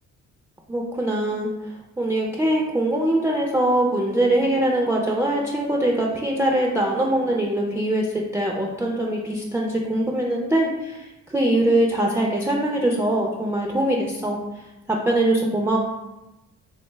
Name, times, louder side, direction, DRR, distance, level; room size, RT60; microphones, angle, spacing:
voice 1, 0.7-1.5 2.0-14.4 14.9-15.8, right 1 dB, 10° right, -1 dB, 0.3 m, -22 dB
3.3 x 2.2 x 3.1 m, 0.99 s
cardioid pair, 90°, 30 cm